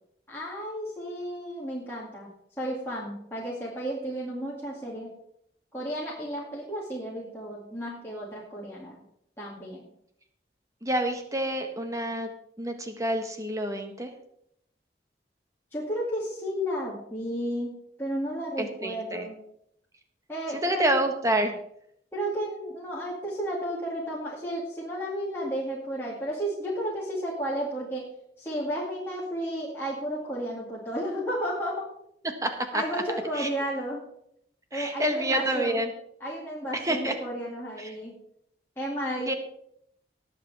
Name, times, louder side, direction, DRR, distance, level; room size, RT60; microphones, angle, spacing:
voice 1, 0.3-2.3 2.6-5.1 5.7-9.0 9.4-9.9 15.7-17.7 18.0-19.4 20.3-20.8 22.1-28.0 28.4-31.8 32.7-34.0 34.7-35.8 36.2-38.1 38.8-39.3, equal, 15° left, -6 dB, 2.2 m, -33 dB
voice 2, 10.8-12.3 12.6-14.1 18.6-19.2 20.5-21.6 32.4-32.8 33.3-33.5 34.7-35.9 36.7-37.1 37.8-37.9 39.3-39.4, right 1 dB, 20° right, 5 dB, 1.3 m, -28 dB
19.0 x 7.7 x 3.4 m, 0.72 s
head